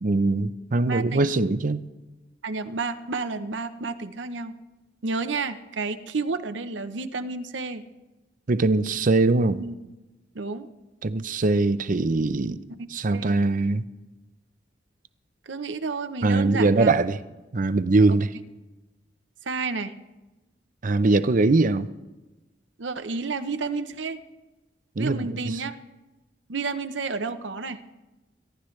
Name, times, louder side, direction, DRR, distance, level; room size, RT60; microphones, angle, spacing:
voice 1, 0.0-1.8 8.5-9.6 11.0-12.6 12.9-13.8 16.2-17.2 17.5-18.3 20.8-21.9 25.0-25.2 25.5-25.6, right 3 dB, 45° right, 0.6 m, -22 dB
voice 2, 0.9-1.3 2.4-4.6 5.0-7.8 9.6-9.7 10.3-10.7 12.7-12.9 13.1-13.4 15.5-16.9 18.1-18.2 19.5-19.9 22.8-24.2 25.0-25.8 26.5-27.8, right 4 dB, 90° right, 0.8 m, -31 dB
24.5 x 12.0 x 3.2 m
head